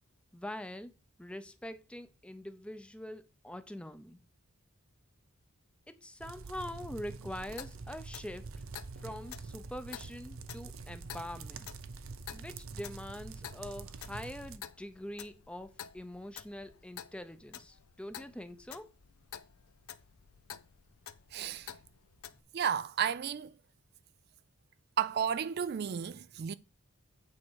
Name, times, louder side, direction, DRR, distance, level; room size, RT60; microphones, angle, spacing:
voice 1, 0.3-0.9 1.2-4.2 5.9-8.5 9.0-11.7 12.3-18.9, left 1 dB, 5° left, 0.6 m, -44 dB
sound 1, 6.2-14.6, right 4 dB, 70° right, 0.8 m, -46 dB
Clock, 7.5-22.4, left 9 dB, 85° left, 0.7 m, -51 dB
voice 2, 21.3-21.7 22.5-23.5 25.0-26.5, right 8 dB, 45° right, 0.3 m, -32 dB
8.7 x 4.4 x 6.3 m
head